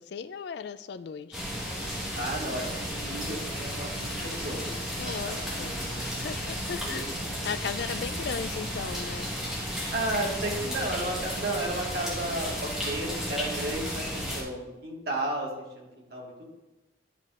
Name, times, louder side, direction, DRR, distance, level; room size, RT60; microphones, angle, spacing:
voice 1, 0.0-1.4 5.0-7.1 7.4-9.3, left 6 dB, 60° left, 13 dB, 0.3 m, -37 dB
sound 1, 1.3-14.4, equal, 5° right, 1.4 m, -33 dB
voice 2, 2.1-4.7 5.0-6.1 6.9-7.1 9.9-14.0 14.3-16.4, right 1 dB, 55° right, -2 dB, 1.6 m, -33 dB
9.8 x 5.8 x 2.5 m, 1.1 s
head